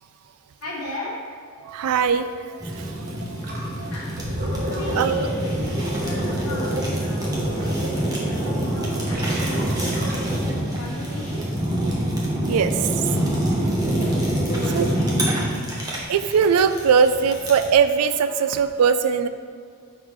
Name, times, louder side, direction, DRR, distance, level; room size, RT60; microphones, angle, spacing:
voice 1, 0.6-1.1 3.8-4.1 4.7-5.2 5.7-7.8 8.1-9.8 10.5-11.4 13.9-15.0, left 1 dB, 80° left, -7 dB, 0.9 m, -37 dB
voice 2, 1.6-2.8 3.3-3.4 3.8-3.9 4.9-5.3 12.4-12.7 14.7-14.9 16.1-19.3, right 6 dB, 85° right, 11 dB, 0.3 m, -20 dB
Fire, 2.6-17.7, right 1 dB, 15° right, 0.8 m, -26 dB
Gurgling, 3.4-3.7 4.0-10.5, equal, 40° right, 1.0 m, -31 dB
5.8 x 5.6 x 3.0 m, 2.2 s
head